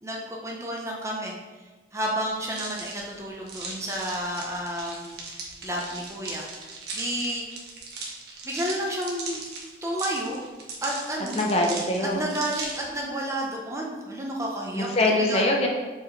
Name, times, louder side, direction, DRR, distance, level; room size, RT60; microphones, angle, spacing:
voice 1, 0.0-1.4 1.9-6.5 6.9-7.5 8.4-9.4 9.8-10.4 10.8-11.4 12.0-14.9 15.2-15.5, right 1 dB, 15° right, -2 dB, 0.9 m, -31 dB
sound 1, 2.5-13.0, right 3 dB, 65° right, 1.3 m, -38 dB
voice 2, 11.3-12.2 14.7-15.7, left 1 dB, 35° left, 0 dB, 0.8 m, -23 dB
7.3 x 4.8 x 3.3 m, 1.3 s
head